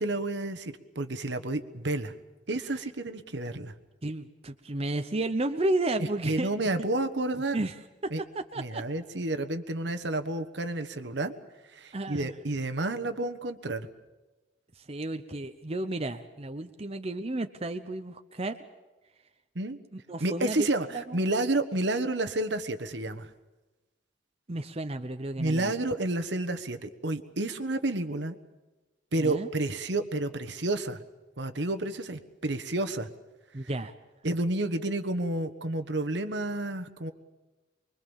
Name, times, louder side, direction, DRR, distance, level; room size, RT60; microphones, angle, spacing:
voice 1, 0.0-2.1 2.5-3.7 6.0-7.6 8.1-8.2 8.6-11.4 11.7-13.9 19.5-19.8 20.2-20.9 21.1-23.3 25.4-28.4 29.1-31.0 31.4-33.1 33.6-33.7 34.2-37.1, right 2 dB, 65° right, 8 dB, 1.3 m, -30 dB
voice 2, 4.0-6.5 7.5-7.7 8.0-8.8 11.9-12.3 14.8-18.6 19.9-20.7 20.9-21.2 24.5-25.7 29.2-29.5 33.5-33.9, right 2 dB, 35° right, 7 dB, 0.8 m, -32 dB
25.0 x 22.5 x 7.2 m, 1.2 s
head